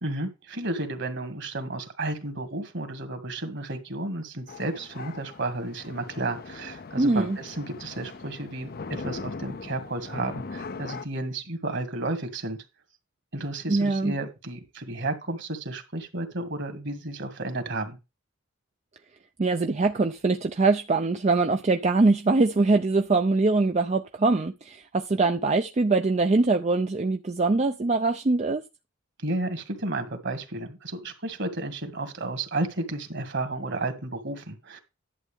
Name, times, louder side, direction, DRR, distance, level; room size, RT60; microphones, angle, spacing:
voice 1, 0.0-12.6 13.3-18.0 29.2-34.8, right 2 dB, 55° right, 2.0 m, -32 dB
sound 1, 4.5-11.1, left 4 dB, 45° left, 0.5 m, -40 dB
voice 2, 7.0-7.4 13.7-14.1 19.4-28.6, right 3 dB, 30° right, 0.4 m, -23 dB
11.0 x 7.9 x 3.5 m
head